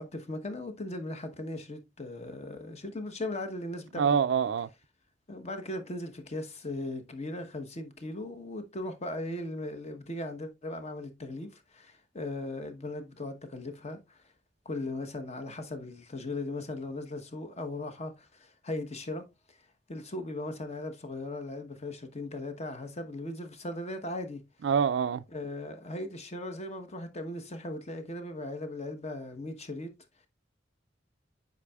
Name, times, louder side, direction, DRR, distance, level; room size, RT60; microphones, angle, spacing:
voice 1, 0.0-4.2 5.3-14.2 14.6-19.6 19.9-24.4 25.3-29.9, left 2 dB, 35° left, 1.0 m, -38 dB
voice 2, 4.0-4.7 24.6-25.2, right 6 dB, 70° right, 0.4 m, -25 dB
8.3 x 5.3 x 2.3 m
head